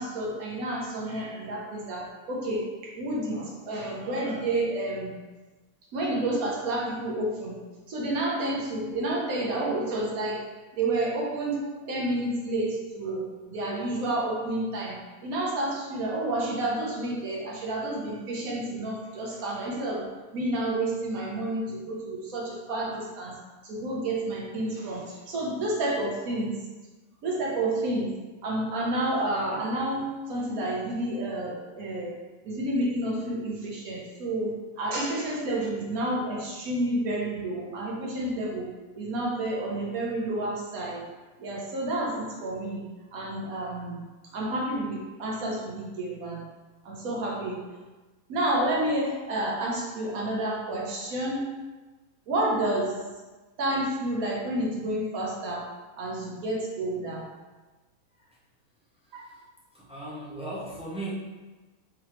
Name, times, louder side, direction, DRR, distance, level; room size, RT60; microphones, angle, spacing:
voice 1, 0.0-5.2 5.9-7.6 7.9-10.4 10.7-20.0 20.3-23.3 23.6-26.5 27.2-28.1 28.4-32.1 32.4-38.7 38.9-41.0 41.4-42.8 43.1-44.0 44.3-46.4 46.8-47.6 48.3-51.4 52.3-52.9 53.6-55.7 56.0-57.3, right 1 dB, 90° right, -3 dB, 1.3 m, -30 dB
voice 2, 59.0-59.4 59.7-61.1, right 1 dB, 10° right, -6 dB, 0.4 m, -38 dB
3.8 x 3.1 x 3.0 m, 1.2 s
omnidirectional pair, 1.5 m